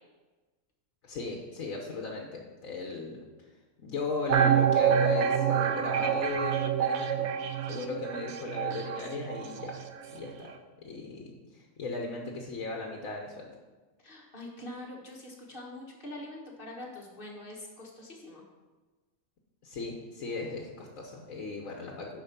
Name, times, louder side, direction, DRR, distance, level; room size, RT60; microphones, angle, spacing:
voice 1, 1.0-3.2 3.8-7.3 7.7-9.8 10.1-10.5 10.8-13.5 19.6-22.2, left 3 dB, 75° left, 0 dB, 1.4 m, -37 dB
sound 1, 4.3-9.9 10.2-10.3, right 8 dB, 65° right, 0.9 m, -27 dB
voice 2, 14.0-18.4, left 1 dB, 40° left, -1 dB, 1.7 m, -44 dB
8.7 x 5.6 x 5.8 m, 1.3 s
omnidirectional pair, 1.4 m